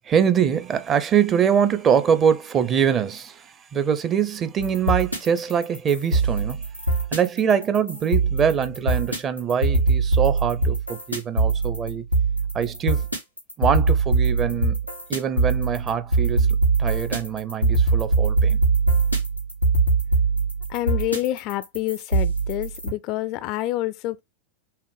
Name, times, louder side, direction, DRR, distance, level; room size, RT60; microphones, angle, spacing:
voice 1, 0.1-6.6 7.1-12.0 12.5-13.1 13.6-14.8 15.1-16.5 16.8-18.6, right 8 dB, 25° right, 0.6 m, -23 dB
sound 1, 4.6-22.9, right 3 dB, 90° right, 1.4 m, -22 dB
voice 2, 20.7-24.2, left 15 dB, 40° left, 0.3 m, -27 dB
5.6 x 2.1 x 3.3 m
figure-of-eight pair, 90°, 0 cm